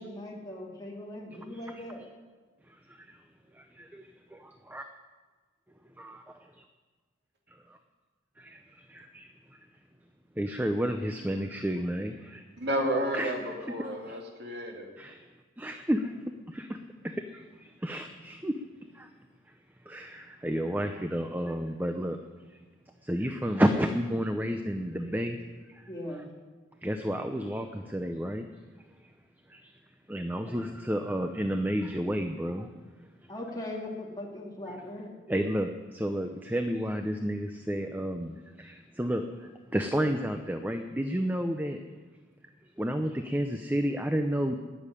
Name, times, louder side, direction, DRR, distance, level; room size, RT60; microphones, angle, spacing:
voice 1, 0.0-2.1 25.9-26.2 30.4-30.5 33.3-35.2, left 1 dB, 20° left, -2 dB, 2.7 m, -39 dB
voice 2, 3.5-4.8 6.0-6.2 6.6-6.7 7.5-7.8 8.4-9.6 10.4-12.4 13.1-13.3 13.8-14.2 15.0-15.2 15.6-16.2 16.5-16.8 17.0-18.6 18.9-19.1 19.9-22.2 23.0-25.4 25.7-25.9 26.8-28.5 29.5-29.7 30.1-32.7 35.3-41.8 42.8-44.6, equal, 10° right, 6 dB, 0.6 m, -31 dB
voice 3, 12.6-14.9, equal, 55° right, 1 dB, 2.4 m, -31 dB
19.0 x 7.2 x 9.9 m, 1.4 s
head